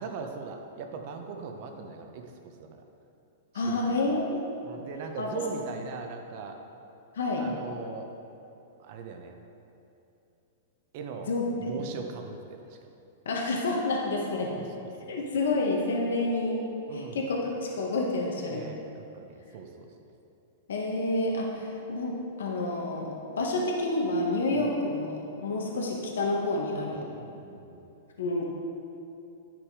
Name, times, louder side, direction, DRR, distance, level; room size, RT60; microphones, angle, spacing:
voice 1, 0.0-2.8 3.5-4.0 4.6-6.6 7.4-8.1 8.8-9.3 10.9-11.3 11.6-12.8 14.5-15.2 16.9-17.3 18.5-19.9 24.5-24.7 26.9-27.9, right 4 dB, 50° right, 4 dB, 1.1 m, -40 dB
voice 2, 3.5-4.5 5.2-5.4 7.1-7.4 11.3-11.4 11.7-11.9 13.2-14.5 15.1-16.6 16.9-18.7 20.7-27.1 28.2-28.4, left 2 dB, 85° left, -1 dB, 1.5 m, -29 dB
10.5 x 6.1 x 4.9 m, 2.9 s
hypercardioid pair, 135°, 0 cm